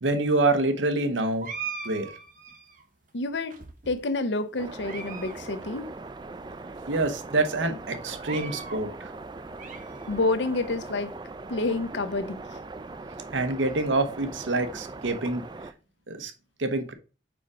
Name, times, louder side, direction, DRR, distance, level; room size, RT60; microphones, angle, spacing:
voice 1, 0.0-1.5 1.8-2.1 6.9-9.1 13.3-15.4 16.1-16.3 16.6-16.9, right 2 dB, 90° right, 1.0 m, -26 dB
sound 1, 1.4-2.8 3.5-4.2 4.7-5.4 5.6-5.7 6.4-6.5 6.9-7.0 8.0-8.8 9.3-10.3, right 5 dB, 45° right, 0.8 m, -40 dB
voice 2, 3.1-3.6 3.9-5.9 10.1-11.1 11.5-12.4, left 2 dB, 70° left, 0.7 m, -28 dB
sound 2, 4.6-15.7, right 3 dB, 25° right, 0.3 m, -40 dB
5.0 x 4.9 x 4.8 m
head